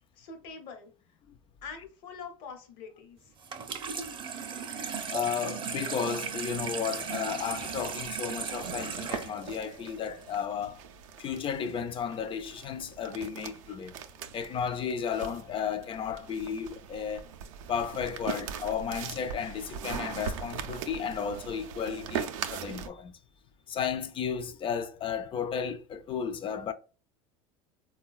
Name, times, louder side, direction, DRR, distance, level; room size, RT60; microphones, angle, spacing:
voice 1, 0.2-0.9 1.6-3.3, left 5 dB, 65° left, 0.9 m, -44 dB
Water tap faucet / Sink (filling or washing), 3.4-10.4, right 6 dB, 30° right, 0.5 m, -37 dB
voice 2, 5.1-10.8 11.2-14.0 14.3-17.3 17.7-23.2 23.7-26.7, left 7 dB, 30° left, 0.4 m, -33 dB
sound 1, 6.2-22.9, right 8 dB, 90° right, 0.4 m, -41 dB
3.7 x 2.2 x 2.3 m
supercardioid pair, 95°, 16 cm